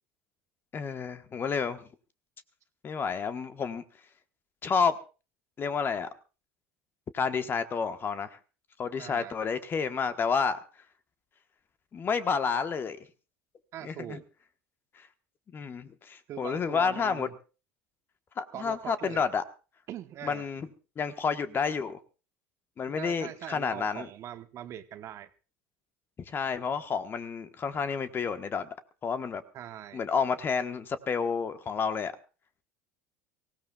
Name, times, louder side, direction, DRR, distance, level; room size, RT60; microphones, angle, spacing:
voice 1, 0.7-1.9 2.8-3.8 4.6-4.9 5.6-6.1 7.1-8.4 8.8-10.6 11.9-13.0 13.8-14.2 14.9-15.1 15.5-17.3 18.4-19.4 20.2-20.7 21.0-22.0 22.8-24.1 26.2-28.7 29.0-29.4 29.9-32.1, left 6 dB, 35° left, 10 dB, 1.3 m, -30 dB
voice 2, 9.0-9.4 13.7-14.2 16.3-17.3 18.5-19.2 19.9-20.4 22.9-25.3 29.5-30.0, right 11 dB, 45° right, 10 dB, 1.1 m, -42 dB
24.0 x 16.5 x 2.4 m, 0.33 s
hypercardioid pair, 75°, 7 cm